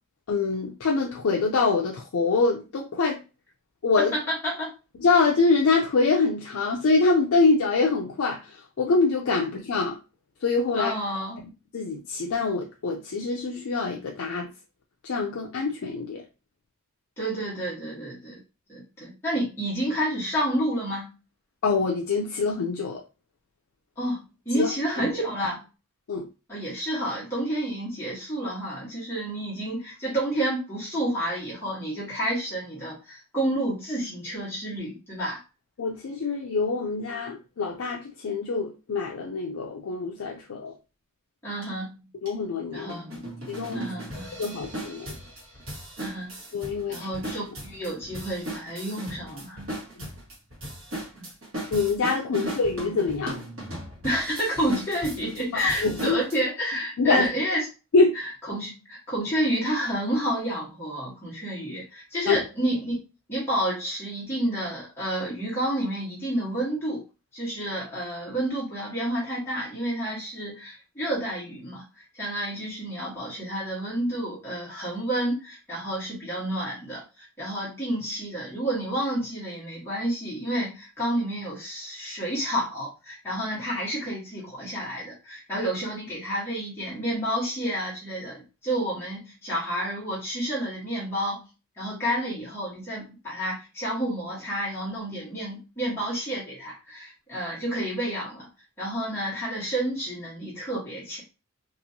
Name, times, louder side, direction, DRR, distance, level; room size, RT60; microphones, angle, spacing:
voice 1, 0.3-3.2 3.8-4.1 5.0-10.0 10.4-10.9 11.7-14.5 15.0-16.2 21.6-23.0 24.5-24.7 25.0-25.1 26.1-26.3 35.8-40.7 42.1-43.2 43.5-43.9 44.4-45.2 46.5-47.1 50.0-50.1 51.7-53.4 55.5-56.2 57.0-57.3 57.9-58.2 62.3-62.4, left 4 dB, 70° left, 1 dB, 0.4 m, -25 dB
voice 2, 4.0-4.7 10.7-11.4 17.2-18.4 18.7-21.1 24.0-25.6 26.5-35.4 41.4-41.9 42.7-43.1 43.7-44.4 46.0-46.4 46.9-49.7 51.2-51.3 52.3-52.4 54.0-57.7 58.1-63.0 63.3-67.0 67.3-91.5 91.8-98.5 98.8-101.2, right 1 dB, 10° left, -9 dB, 1.1 m, -30 dB
sound 1, 41.6-41.7 42.3-42.4 42.9-56.4, right 1 dB, 65° right, 1.3 m, -37 dB
3.0 x 2.5 x 2.6 m, 0.31 s
head